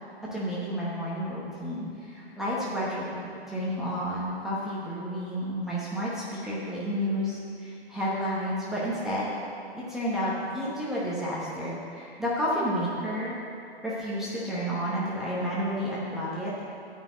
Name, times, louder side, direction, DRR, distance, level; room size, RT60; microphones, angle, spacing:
voice 1, 0.3-9.3 9.7-13.4 13.8-16.6, equal, ahead, -8 dB, 0.9 m, -31 dB
8.8 x 5.8 x 8.1 m, 2.5 s
hypercardioid pair, 155°, 33 cm